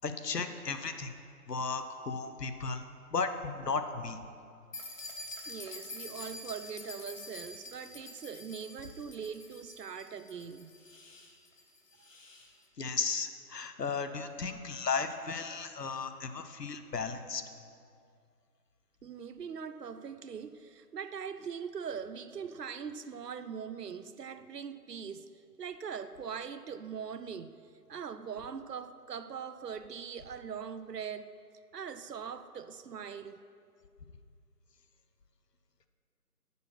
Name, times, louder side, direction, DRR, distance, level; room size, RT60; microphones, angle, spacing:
voice 1, 0.0-1.1 1.5-2.8 3.1-4.2 12.8-17.4, left 5 dB, 80° left, 0.9 m, -35 dB
sound 1, 4.7-12.5, left 2 dB, 50° left, 1.4 m, -47 dB
voice 2, 5.5-10.7 12.0-12.1 19.0-25.3 25.6-27.6 27.9-31.3 31.7-33.4, right 7 dB, 80° right, 0.6 m, -41 dB
10.0 x 7.2 x 6.0 m
figure-of-eight pair, 160°, 48 cm